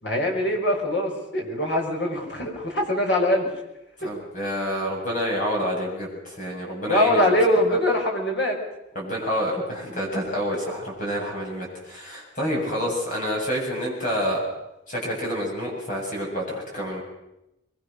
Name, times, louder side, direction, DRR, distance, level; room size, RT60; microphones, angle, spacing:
voice 1, 0.0-3.5 6.8-8.6 12.8-12.9, left 1 dB, 70° left, 0 dB, 6.1 m, -23 dB
voice 2, 4.0-7.4 7.7-7.8 8.9-14.4 14.9-17.0, equal, 40° left, -2 dB, 7.9 m, -28 dB
24.0 x 23.0 x 6.7 m, 0.89 s
head